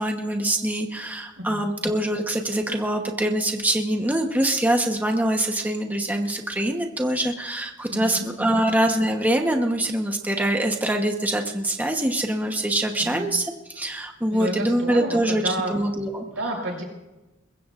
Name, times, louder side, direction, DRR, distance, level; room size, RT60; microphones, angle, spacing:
voice 1, 0.0-16.2, right 1 dB, 10° right, 3 dB, 1.0 m, -24 dB
voice 2, 1.4-1.7 7.9-8.7 13.0-13.3 14.3-15.7 16.2-16.8, right 1 dB, 85° right, 0 dB, 6.4 m, -31 dB
23.0 x 21.5 x 2.5 m, 1.0 s
head